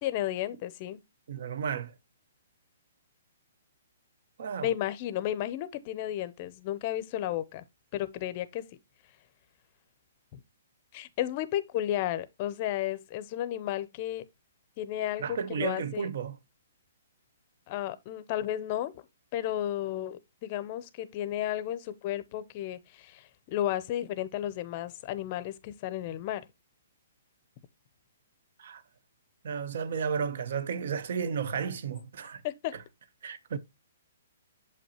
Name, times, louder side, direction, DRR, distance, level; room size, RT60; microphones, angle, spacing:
voice 1, 0.0-1.0 4.6-7.6 7.9-8.6 10.3-10.4 10.9-14.2 14.8-16.1 17.7-18.9 19.3-26.4 32.4-32.7, left 12 dB, 30° left, 0.6 m, -33 dB
voice 2, 1.3-1.9 4.4-4.7 15.2-16.4 28.6-28.8 29.4-32.4 32.7-32.8 33.2-33.6, right 6 dB, 55° right, 0.8 m, -33 dB
7.3 x 5.4 x 2.9 m
hypercardioid pair, 165°, 0 cm